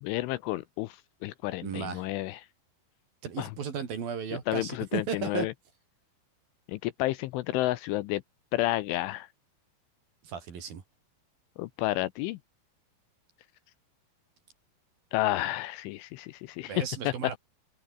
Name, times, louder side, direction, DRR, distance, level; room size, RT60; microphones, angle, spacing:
voice 1, 0.0-2.4 3.4-3.5 4.5-5.5 6.7-8.2 8.5-9.3 11.6-12.4 15.1-17.1, left 17 dB, 80° left, 3.0 m, -31 dB
voice 2, 1.6-2.1 3.2-5.5 10.2-10.8 16.7-17.4, right 7 dB, 50° right, 4.3 m, -35 dB
omnidirectional pair, 6.0 m